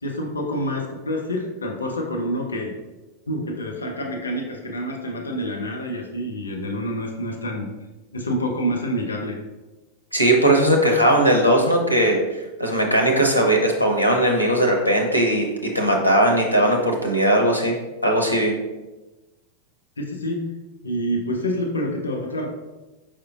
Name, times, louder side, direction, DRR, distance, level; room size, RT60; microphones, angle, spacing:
voice 1, 0.0-2.8 3.3-7.7 8.1-9.4 20.0-20.5 20.8-22.5, equal, 75° left, 1 dB, 0.7 m, -27 dB
voice 2, 10.1-15.5 15.7-17.8 18.0-18.5, right 1 dB, 90° right, 2 dB, 0.6 m, -19 dB
4.9 x 4.4 x 2.3 m, 1.1 s
figure-of-eight pair, 90°, 0 cm